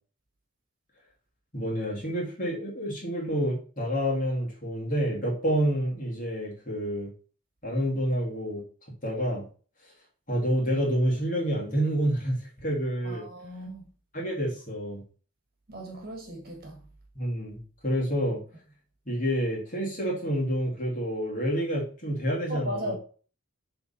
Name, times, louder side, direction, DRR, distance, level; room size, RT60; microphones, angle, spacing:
voice 1, 1.5-7.1 7.6-8.6 9.0-9.5 10.3-13.3 14.1-15.0 17.1-18.4 19.1-22.9, equal, 35° left, 2.3 m, -28 dB
voice 2, 13.0-13.8 15.7-16.8 22.5-22.9, equal, 45° right, 1.6 m, -36 dB
6.7 x 3.6 x 4.2 m
head